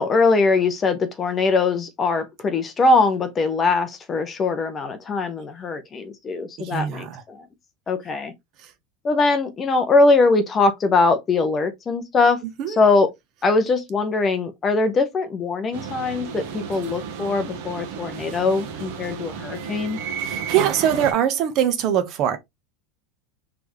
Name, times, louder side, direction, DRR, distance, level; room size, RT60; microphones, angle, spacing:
voice 1, 0.0-7.5 7.9-8.3 9.0-12.4 12.7-13.1 13.4-20.0, left 3 dB, 15° left, 0.6 m, -21 dB
voice 2, 6.6-7.2 8.6-8.7 12.6-12.8 20.2-22.4, right 9 dB, 35° right, 0.8 m, -22 dB
sound 1, 15.7-21.1, right 7 dB, 55° right, 1.2 m, -32 dB
4.2 x 3.3 x 3.0 m
supercardioid pair, 175°, 0 cm